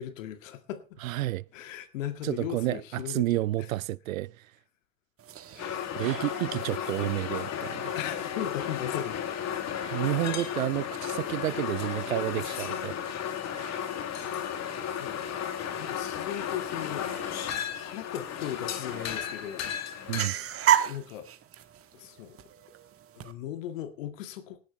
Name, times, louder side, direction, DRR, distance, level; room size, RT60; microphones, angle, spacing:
voice 1, 0.0-0.8 1.5-3.3 3.6-3.7 5.5-5.9 6.5-6.8 8.0-9.2 15.0-15.3 15.7-17.1 17.7-19.7 20.8-21.3 21.9-22.4 23.2-24.6, left 11 dB, 70° left, 2.0 m, -37 dB
voice 2, 1.0-1.4 2.2-4.3 6.0-7.9 9.9-13.0 20.1-20.4, right 16 dB, 80° right, 0.6 m, -30 dB
sound 1, 5.2-23.3, right 11 dB, 35° right, 1.6 m, -37 dB
sound 2, 5.6-20.3, left 9 dB, 40° left, 2.5 m, -34 dB
18.5 x 11.5 x 3.2 m
hypercardioid pair, 80°, 40 cm